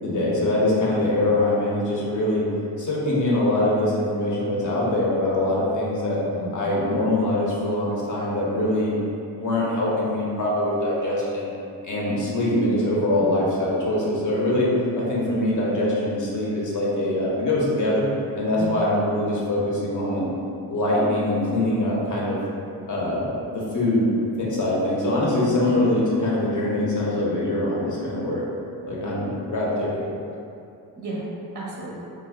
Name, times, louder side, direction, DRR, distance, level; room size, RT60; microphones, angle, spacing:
voice 1, 0.0-2.4 2.8-6.2 6.5-8.9 9.3-11.5 11.8-14.7 14.9-18.1 18.3-20.3 20.7-22.4 22.9-24.1 24.4-28.4 28.9-30.2, left 1 dB, 45° left, -5 dB, 0.8 m, -23 dB
voice 2, 31.0-31.9, right 2 dB, 25° right, -5 dB, 0.5 m, -34 dB
3.4 x 2.1 x 2.2 m, 2.6 s
cardioid pair, 80°, 44 cm